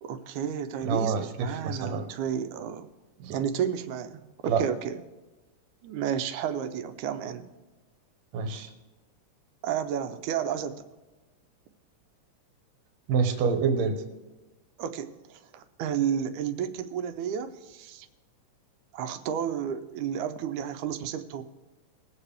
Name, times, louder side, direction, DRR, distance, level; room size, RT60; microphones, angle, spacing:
voice 1, 0.0-2.9 3.3-5.0 5.8-7.5 9.6-10.8 14.8-18.1 18.9-21.4, right 8 dB, 85° right, 9 dB, 2.1 m, -32 dB
voice 2, 0.8-2.0 3.2-3.4 4.5-4.6 8.3-8.7 13.1-14.0, right 5 dB, 70° right, 6 dB, 2.1 m, -27 dB
20.0 x 7.4 x 3.4 m, 1.2 s
omnidirectional pair, 3.4 m